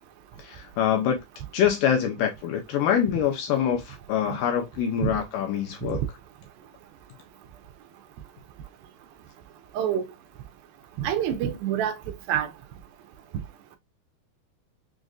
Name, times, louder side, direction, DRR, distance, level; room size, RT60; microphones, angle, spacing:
voice 1, 0.4-1.2 1.5-6.0, left 9 dB, 80° left, 2.1 m, -25 dB
voice 2, 9.7-10.0 11.0-12.5, right 10 dB, 80° right, 2.3 m, -27 dB
6.3 x 2.5 x 2.3 m
omnidirectional pair, 4.4 m